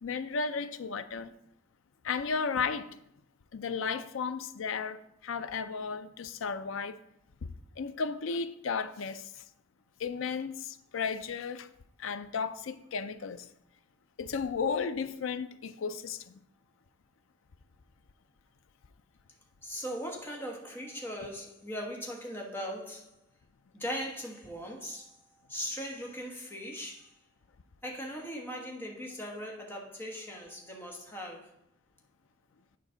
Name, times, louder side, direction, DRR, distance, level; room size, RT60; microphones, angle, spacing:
voice 1, 0.0-1.3 2.0-3.0 3.5-7.0 7.4-7.5 7.8-9.3 10.0-11.7 12.0-13.5 14.2-16.4, left 5 dB, 75° left, 0.5 m, -34 dB
voice 2, 19.6-23.1 23.7-25.1 25.5-27.1 27.8-31.5, equal, 10° left, 1.3 m, -39 dB
9.5 x 5.1 x 3.9 m
head